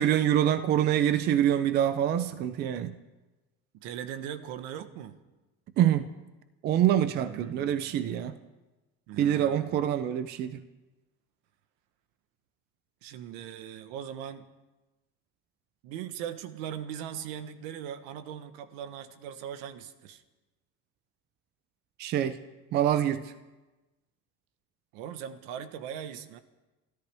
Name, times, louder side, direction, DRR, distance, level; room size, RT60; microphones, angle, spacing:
voice 1, 0.0-2.9 5.8-6.1 6.6-8.3 9.2-10.6 22.0-22.4 22.7-23.3, right 10 dB, 30° right, 12 dB, 0.5 m, -25 dB
voice 2, 3.7-5.2 7.2-8.0 9.1-10.2 13.0-14.4 15.8-20.2 24.9-26.4, right 9 dB, 75° right, 11 dB, 1.2 m, -40 dB
29.0 x 13.5 x 3.4 m, 1.1 s
cardioid pair, 180°, 33 cm